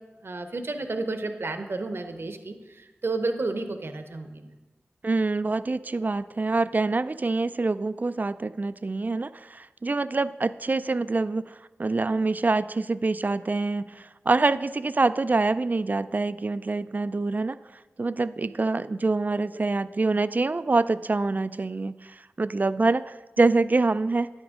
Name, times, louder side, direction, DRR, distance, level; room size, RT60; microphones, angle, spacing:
voice 1, 0.2-4.5, right 3 dB, 55° right, 7 dB, 0.8 m, -31 dB
voice 2, 5.0-17.6 18.0-24.3, right 3 dB, 40° right, 15 dB, 0.3 m, -25 dB
9.7 x 8.0 x 3.6 m, 1.2 s
cardioid pair, 45°, 5 cm